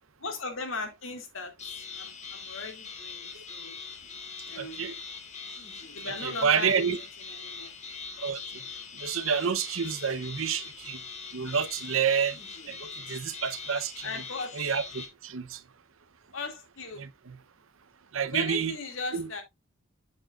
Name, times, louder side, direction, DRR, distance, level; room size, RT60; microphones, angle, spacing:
voice 1, 0.2-1.5 1.9-3.8 4.4-4.8 5.9-7.7 14.0-14.6 16.3-17.0 18.3-19.4, left 3 dB, 80° left, 2.3 m, -38 dB
sound 1, 1.6-15.1, left 5 dB, 35° left, 1.7 m, -42 dB
voice 2, 4.6-4.9 6.2-7.0 8.2-8.6 8.9-11.0 11.3-12.4 12.7-14.1 14.5-15.6 17.0-17.4 18.1-18.8 19.1-19.3, right 7 dB, 90° right, 0.7 m, -29 dB
7.7 x 7.5 x 2.4 m
head